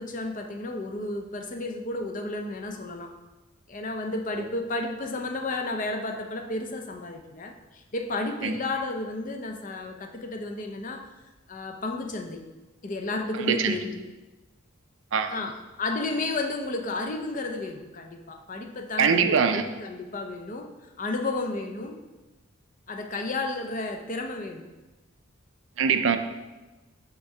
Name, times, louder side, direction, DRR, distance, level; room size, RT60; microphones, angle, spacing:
voice 1, 0.0-3.1 3.7-11.1 11.5-12.4 12.8-14.0 15.3-15.5 15.8-20.7 21.0-22.0 22.9-24.7, left 2 dB, 40° left, 5 dB, 0.6 m, -32 dB
voice 2, 13.5-13.8 15.1-15.4 19.0-19.6 25.8-26.2, right 6 dB, 70° right, 9 dB, 0.4 m, -22 dB
6.1 x 3.6 x 5.4 m, 1.1 s
head